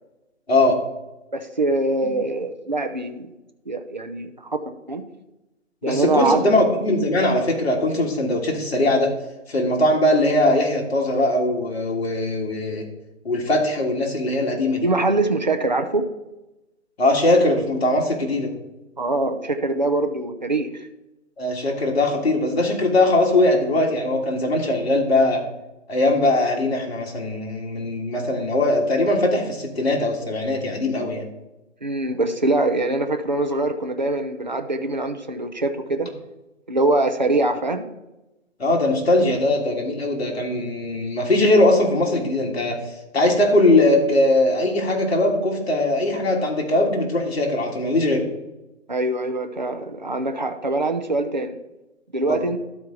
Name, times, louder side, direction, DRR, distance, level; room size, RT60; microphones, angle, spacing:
voice 1, 0.5-0.8 5.8-9.1 9.5-12.9 13.2-14.9 17.0-18.5 21.4-25.4 25.9-31.2 38.6-42.8 43.1-48.3 52.3-52.4, left 1 dB, 55° left, 0 dB, 1.8 m, -20 dB
voice 2, 1.3-3.3 3.7-4.3 4.9-5.0 5.8-6.4 14.8-16.0 19.0-20.7 31.8-36.1 36.7-37.9 48.9-51.5 52.1-52.6, right 2 dB, 40° right, 6 dB, 0.4 m, -23 dB
12.0 x 4.4 x 3.7 m, 0.99 s
hypercardioid pair, 175°, 39 cm